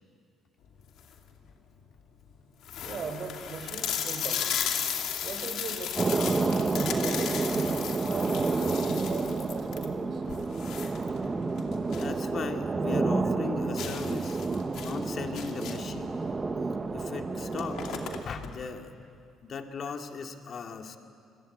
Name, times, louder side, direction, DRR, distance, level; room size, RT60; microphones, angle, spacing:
sound 1, 0.8-1.3 1.9-2.0 2.2-2.3 2.6-12.2 12.5-12.6 13.0-13.1 13.8-16.0 16.9-17.1 17.3-18.5, left 9 dB, 70° left, 2.7 m, -35 dB
voice 1, 2.8-4.5 5.2-10.2, right 5 dB, 55° right, 7 dB, 4.3 m, -39 dB
sound 2, 6.0-18.2, right 3 dB, 30° right, 1.4 m, -30 dB
voice 2, 11.8-14.4 14.8-16.2 16.9-18.9 19.4-21.0, left 5 dB, 50° left, 4 dB, 2.5 m, -38 dB
28.0 x 21.5 x 8.8 m, 2.4 s
supercardioid pair, 75°, 0 cm